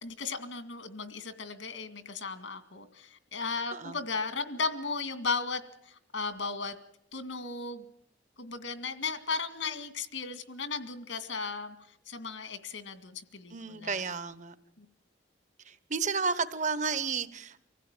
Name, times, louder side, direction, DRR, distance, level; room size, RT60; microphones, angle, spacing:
voice 1, 0.0-6.8 7.1-7.8 8.4-11.8 12.1-14.0 14.8-14.9, left 4 dB, 85° left, 10 dB, 2.2 m, -36 dB
voice 2, 13.5-14.5 15.6-17.6, right 5 dB, 40° right, 15 dB, 1.1 m, -32 dB
25.0 x 16.0 x 9.0 m, 0.73 s
head